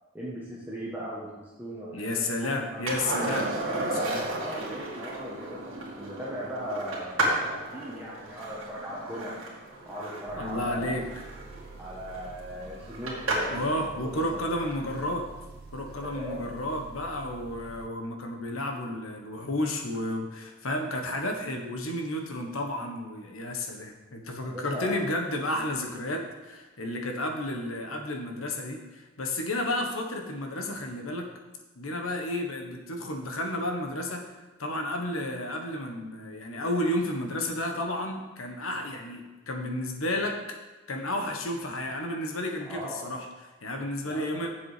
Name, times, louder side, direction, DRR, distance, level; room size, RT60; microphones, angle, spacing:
voice 1, 0.1-2.8 3.2-3.4 4.3-9.4 9.8-11.0 11.8-14.4 16.0-16.5 24.4-24.9 42.7-43.1 44.0-44.4, equal, 10° right, -8 dB, 1.3 m, -39 dB
voice 2, 1.9-3.5 3.8-4.3 10.4-11.0 13.5-15.3 15.7-31.3 31.8-34.2 34.6-40.4 40.9-43.3 43.6-44.5, left 1 dB, 85° left, 3 dB, 1.3 m, -32 dB
Skateboard, 2.9-13.7 16.3-16.4, right 1 dB, 90° right, 2.3 m, -33 dB
sound 1, 10.3-17.9, right 3 dB, 50° right, 0.5 m, -47 dB
7.6 x 7.3 x 5.0 m, 1.2 s
head